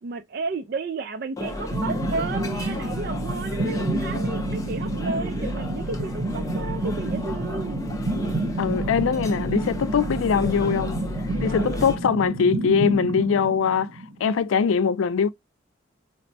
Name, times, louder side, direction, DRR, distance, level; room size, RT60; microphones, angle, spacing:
voice 1, 0.0-7.8 11.3-11.9, right 4 dB, 50° right, 0.3 m, -33 dB
sound 1, 1.4-11.9, left 1 dB, 15° left, 0.5 m, -33 dB
sound 2, 1.7-14.4, right 2 dB, 90° right, 0.8 m, -29 dB
voice 2, 8.6-11.0 11.4-13.9 14.2-15.3, left 6 dB, 80° left, 0.3 m, -22 dB
4.3 x 2.0 x 2.6 m
head